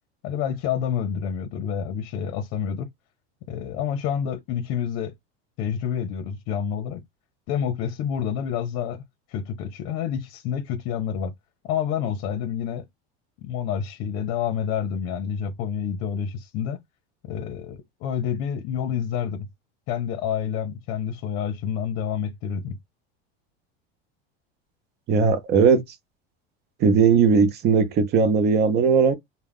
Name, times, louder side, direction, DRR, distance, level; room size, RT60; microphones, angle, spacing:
voice 1, 0.2-2.9 3.5-5.1 5.6-7.0 7.5-9.0 9.3-11.3 11.6-12.8 13.4-16.8 17.2-19.5 19.9-22.8, left 8 dB, 55° left, 0.7 m, -28 dB
voice 2, 25.1-25.8 26.8-29.1, right 5 dB, 35° right, 0.7 m, -18 dB
2.3 x 2.2 x 3.4 m
supercardioid pair, 130°, 30 cm